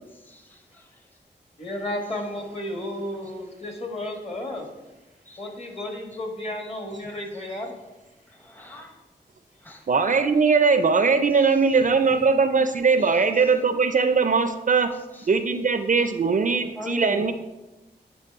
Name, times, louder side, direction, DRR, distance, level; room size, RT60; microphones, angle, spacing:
voice 1, 0.3-0.9 5.3-5.4 7.1-7.2 8.4-8.9 9.6-9.8 11.4-11.6 13.0-13.2 15.1-15.3 16.8-17.2, left 2 dB, 10° left, 3 dB, 0.8 m, -39 dB
voice 2, 1.6-4.7 5.4-7.7, left 1 dB, 35° left, 2 dB, 1.5 m, -33 dB
voice 3, 9.9-14.9 15.3-17.3, right 5 dB, 45° right, 9 dB, 0.4 m, -20 dB
9.5 x 3.3 x 3.5 m, 1.1 s
cardioid pair, 55°, 18 cm